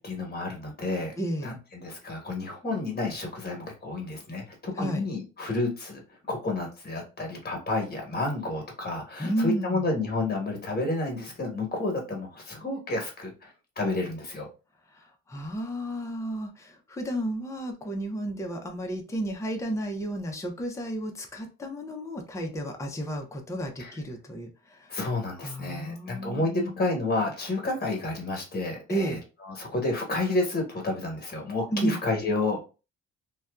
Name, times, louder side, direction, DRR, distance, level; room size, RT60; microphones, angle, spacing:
voice 1, 0.0-1.1 1.4-6.0 6.3-13.5 13.8-14.5 23.8-23.9 24.9-29.2 29.5-32.6, left 2 dB, 30° left, 1 dB, 1.2 m, -30 dB
voice 2, 1.2-1.6 4.7-5.0 9.2-9.8 14.9-25.0 25.4-26.8 28.9-29.2 31.7-32.0, right 1 dB, 10° left, 2 dB, 0.5 m, -32 dB
2.6 x 2.2 x 2.3 m, 0.32 s
cardioid pair, 90°, 30 cm